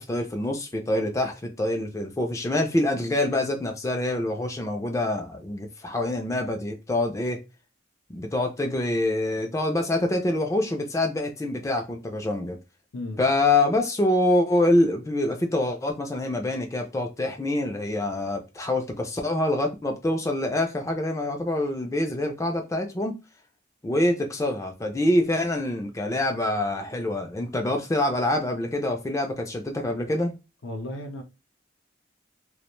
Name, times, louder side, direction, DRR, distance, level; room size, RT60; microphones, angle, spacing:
voice 1, 0.0-7.4 8.1-12.6 13.2-23.1 23.8-30.3, left 1 dB, 15° left, 0.3 m, -25 dB
voice 2, 30.6-31.2, left 1 dB, 90° left, 0.6 m, -34 dB
2.4 x 2.1 x 3.0 m
head